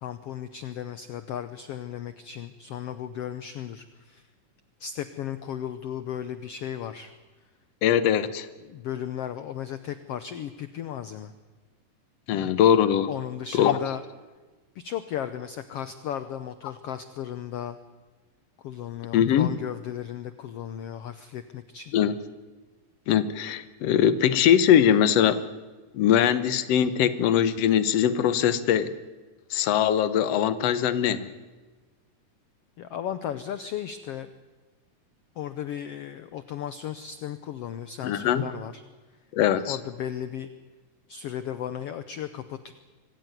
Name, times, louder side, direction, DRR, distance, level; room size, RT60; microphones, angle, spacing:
voice 1, 0.0-4.3 4.8-7.1 8.6-11.3 13.1-14.0 14.7-17.8 18.6-21.9 32.8-34.3 35.4-38.8 39.7-40.5 41.1-42.7, left 10 dB, 85° left, 11 dB, 1.3 m, -35 dB
voice 2, 7.8-8.5 12.3-13.1 13.5-13.8 19.1-19.5 21.9-22.2 23.1-25.4 25.9-28.9 29.5-31.3 38.0-38.5 39.3-39.8, left 9 dB, 65° left, 13 dB, 1.7 m, -21 dB
25.0 x 15.0 x 9.6 m, 1.3 s
omnidirectional pair, 3.8 m